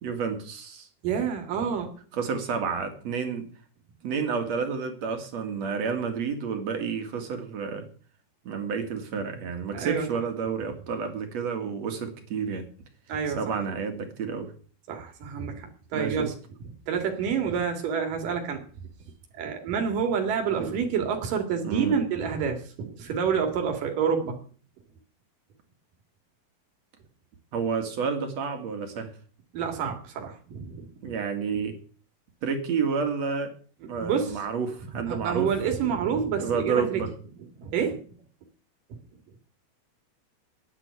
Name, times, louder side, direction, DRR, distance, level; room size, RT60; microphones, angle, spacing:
voice 1, 0.0-0.9 2.1-3.5 4.0-7.8 8.4-12.6 13.4-14.5 15.9-16.3 21.6-22.0 27.5-29.1 31.0-31.8 32.4-33.5 33.9-35.5 36.4-37.1, right 5 dB, 55° right, 6 dB, 3.1 m, -30 dB
voice 2, 1.0-1.9 9.7-10.1 13.1-13.4 14.9-16.3 16.9-18.6 19.3-24.4 29.5-31.2 34.0-34.4 35.0-37.1 37.6-38.0, right 7 dB, 80° right, 4 dB, 3.7 m, -28 dB
10.0 x 9.9 x 9.7 m, 0.43 s
omnidirectional pair, 3.7 m